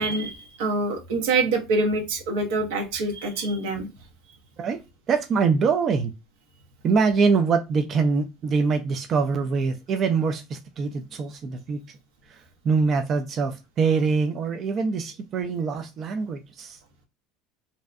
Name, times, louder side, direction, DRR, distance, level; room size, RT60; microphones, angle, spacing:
voice 1, 0.0-3.9, right 2 dB, 85° right, 3 dB, 0.7 m, -25 dB
voice 2, 5.1-6.1 6.8-11.8 12.3-16.8, right 5 dB, 45° right, 6 dB, 0.3 m, -24 dB
2.5 x 2.1 x 2.4 m, 0.25 s
supercardioid pair, 100°, 0 cm